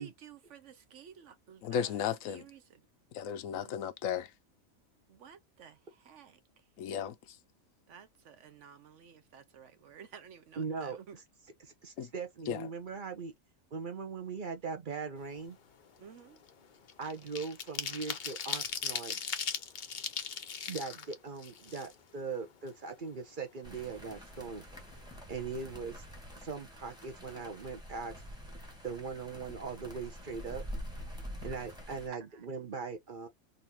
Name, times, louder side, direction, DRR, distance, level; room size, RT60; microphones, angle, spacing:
voice 1, 0.0-2.9 3.5-3.7 5.1-6.7 7.9-11.2 16.0-16.4 32.1-32.6, right 7 dB, 65° right, 1.1 m, -54 dB
voice 2, 1.6-2.4 3.1-4.3 6.8-7.4 12.0-12.1 12.5-12.7, left 8 dB, 80° left, 1.0 m, -35 dB
voice 3, 10.6-11.0 11.6-13.3 13.7-15.6 17.0-19.2 20.7-24.6 25.3-26.0 26.3-28.1 28.8-30.6 31.4-33.3, right 5 dB, 45° right, 0.8 m, -40 dB
sound 1, 15.3-15.5 15.9-22.3 22.7-22.8 23.1-24.1 24.4-24.5 24.8-25.1, left 6 dB, 50° left, 0.6 m, -39 dB
sound 2, 23.6-32.1, equal, 5° right, 1.1 m, -46 dB
4.0 x 2.7 x 2.9 m
omnidirectional pair, 1.4 m